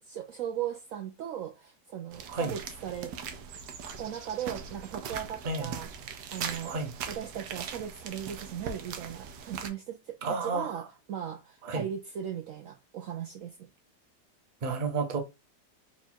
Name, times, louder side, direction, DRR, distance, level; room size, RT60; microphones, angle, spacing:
voice 1, 0.0-3.1 4.0-5.9 6.3-6.7 7.1-13.6, right 9 dB, 70° right, 0.8 m, -38 dB
sound 1, 2.1-9.7, right 6 dB, 90° right, 1.3 m, -40 dB
voice 2, 10.2-10.8 11.6-11.8 14.6-15.2, right 4 dB, 40° right, 0.7 m, -31 dB
4.4 x 2.4 x 4.2 m
omnidirectional pair, 1.8 m